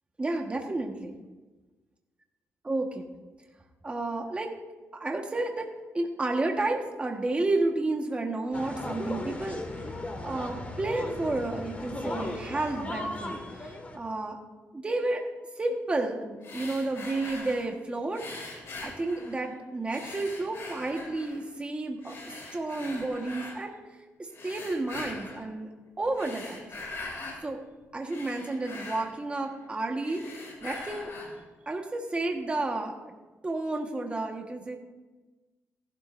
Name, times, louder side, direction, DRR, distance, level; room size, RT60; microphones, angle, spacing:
voice 1, 0.2-1.1 2.6-3.1 3.8-4.5 4.9-5.7 5.9-10.0 10.2-14.4 14.7-15.2 15.6-18.2 18.5-25.7 26.0-26.7 27.4-27.6 27.9-31.1 31.6-33.1 33.4-34.8, right 2 dB, 25° right, 2 dB, 1.4 m, -31 dB
sound 1, 8.5-14.0, left 2 dB, 30° left, 1.8 m, -36 dB
sound 2, 16.4-17.7 18.1-19.5 19.9-21.5 22.0-23.6 24.3-25.5 26.0-27.4 27.8-29.7 30.0-31.4, left 3 dB, 60° left, 3.9 m, -42 dB
18.5 x 12.0 x 2.6 m, 1.2 s
cardioid pair, 100°, 5 cm